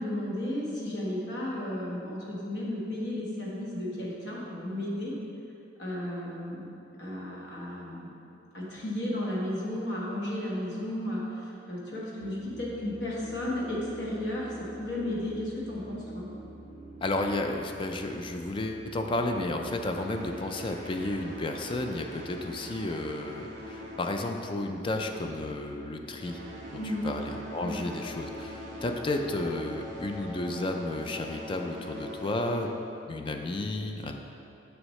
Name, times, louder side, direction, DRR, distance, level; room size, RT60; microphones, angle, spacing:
voice 1, 0.0-5.1 5.8-6.6 7.0-8.1 8.5-16.3 26.8-27.1 27.6-27.8, left 1 dB, 65° left, -5 dB, 1.3 m, -34 dB
sound 1, 12.2-30.3, right 1 dB, 85° left, 1.3 m, -47 dB
voice 2, 17.0-26.4 26.7-32.7 33.1-34.2, left 2 dB, 30° left, 4 dB, 0.4 m, -32 dB
sound 2, 19.9-24.8 25.1-25.4 26.0-33.0, left 1 dB, 45° right, 1.4 m, -44 dB
7.0 x 6.3 x 3.1 m, 2.8 s
head